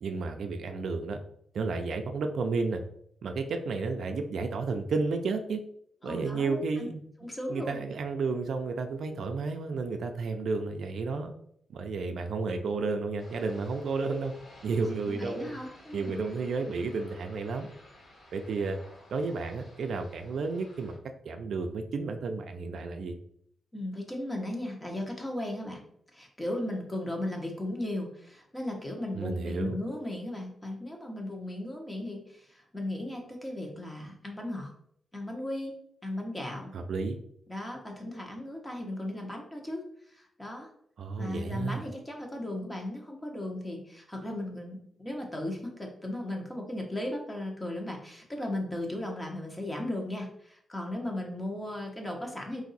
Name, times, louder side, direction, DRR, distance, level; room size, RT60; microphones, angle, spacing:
voice 1, 0.0-1.2 1.5-2.8 3.2-5.6 6.0-7.1 7.5-11.3 11.7-14.3 14.6-15.5 15.9-17.7 18.3-18.8 19.1-20.9 21.2-23.2 29.1-29.8 36.7-37.2 41.0-41.8, right 4 dB, 60° right, 6 dB, 0.4 m, -32 dB
voice 2, 6.0-6.9 7.2-7.8 15.1-16.3 23.7-25.8 26.1-34.7 35.1-35.8 36.0-36.7 37.5-40.7 41.2-52.6, left 1 dB, 15° left, 1 dB, 1.0 m, -36 dB
sound 1, 13.2-21.0, left 1 dB, 50° left, 1.5 m, -54 dB
4.8 x 2.6 x 4.1 m, 0.68 s
wide cardioid pair, 150°, 0 cm